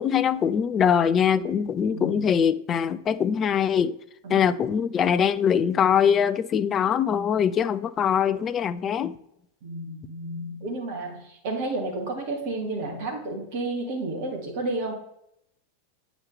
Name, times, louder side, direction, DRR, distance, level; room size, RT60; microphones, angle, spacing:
voice 1, 0.0-4.0 4.3-9.2, left 8 dB, 25° left, 0.4 m, -22 dB
voice 2, 1.9-2.3 4.2-4.5 9.6-14.9, right 2 dB, 50° right, 2.0 m, -31 dB
8.8 x 5.0 x 3.3 m
figure-of-eight pair, 90°, 0 cm